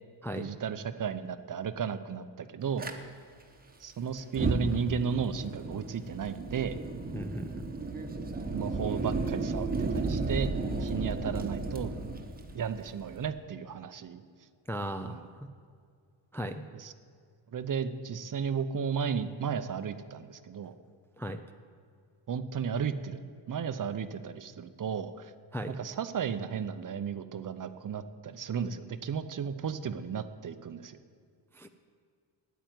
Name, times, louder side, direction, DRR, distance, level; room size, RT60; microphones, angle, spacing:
voice 1, 0.4-2.9 3.8-6.8 8.5-10.5 10.8-11.9 12.5-14.2 15.0-15.3 16.7-16.9 17.5-20.8 22.3-23.2 23.5-25.3 25.8-31.0, right 7 dB, 40° right, 12 dB, 0.7 m, -34 dB
Fire, 2.8-2.9 4.2-13.3, right 3 dB, 20° right, 1.0 m, -34 dB
voice 2, 7.1-7.6 14.7-15.2 16.3-16.6 21.2-21.4 25.5-25.8 31.5-31.7, equal, 5° left, 6 dB, 0.4 m, -36 dB
9.3 x 9.2 x 9.1 m, 2.3 s
cardioid pair, 120°, 48 cm